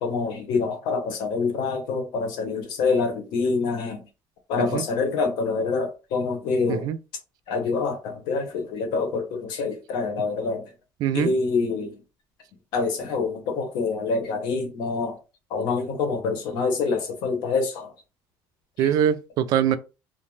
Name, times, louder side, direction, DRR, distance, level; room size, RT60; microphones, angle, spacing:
voice 1, 0.0-4.0 4.5-6.9 7.5-10.7 11.1-11.9 12.7-15.2 15.5-17.9 18.8-18.9, left 4 dB, 85° left, 0.9 m, -26 dB
voice 2, 11.0-11.3 18.8-19.8, right 9 dB, 65° right, 0.3 m, -22 dB
2.5 x 2.1 x 3.1 m
cardioid pair, 145°, 7 cm